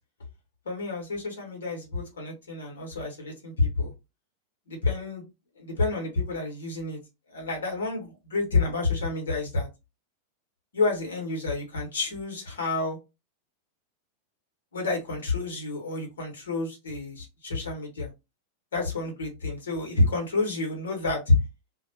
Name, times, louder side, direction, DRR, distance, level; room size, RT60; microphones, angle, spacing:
voice 1, 0.6-3.9 4.7-5.3 5.6-7.0 7.3-9.7 10.7-13.0 14.7-18.1 18.7-21.4, left 3 dB, 65° left, 1.2 m, -29 dB
2.4 x 2.3 x 2.8 m
figure-of-eight pair, 90°, 0 cm